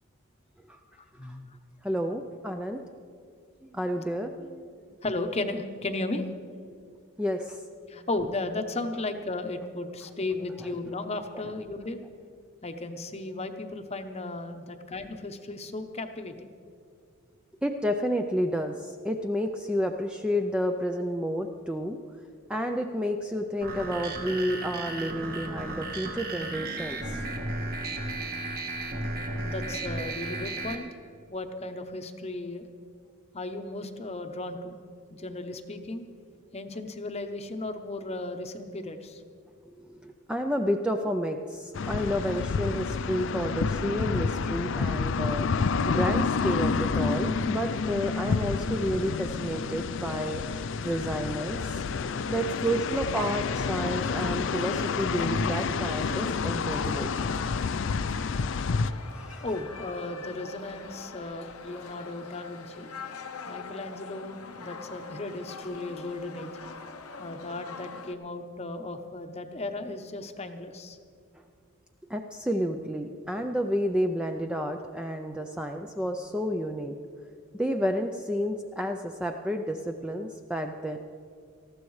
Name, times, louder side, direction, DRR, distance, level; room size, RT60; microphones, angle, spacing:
voice 1, 1.2-1.6 5.0-6.2 7.9-12.0 12.6-16.5 29.4-30.9 31.3-32.6 33.3-34.7 35.1-36.0 36.5-39.2 59.4-62.9 63.5-66.5 67.2-71.0, left 2 dB, 30° left, 6 dB, 0.8 m, -35 dB
voice 2, 1.8-2.8 3.6-4.7 6.9-7.6 8.0-8.1 10.6-10.7 11.3-11.5 17.6-22.0 22.5-27.2 39.8-50.5 50.8-57.1 59.1-59.4 72.1-76.9 77.5-81.0, equal, 5° right, 4 dB, 0.4 m, -30 dB
sound 1, 23.6-30.7, right 2 dB, 45° right, 1.4 m, -34 dB
sound 2, 41.7-58.9, left 5 dB, 55° left, 0.4 m, -29 dB
sound 3, 54.6-68.1, left 5 dB, 90° left, 0.8 m, -44 dB
19.5 x 14.0 x 3.2 m, 2.3 s
head